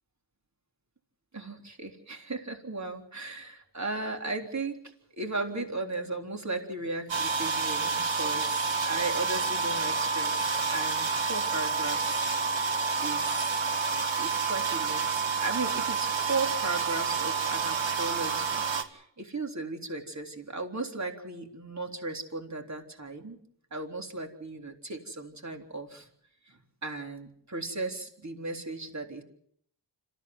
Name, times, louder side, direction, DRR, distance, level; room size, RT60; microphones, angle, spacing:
voice 1, 1.3-4.8 5.2-12.6 13.0-13.6 14.2-23.4 23.7-26.1 26.5-29.2, right 3 dB, 40° right, 3 dB, 3.8 m, -36 dB
sound 1, 7.1-18.8, right 4 dB, 85° right, 1.8 m, -29 dB
26.5 x 15.0 x 8.0 m, 0.67 s
cardioid pair, 50°, 44 cm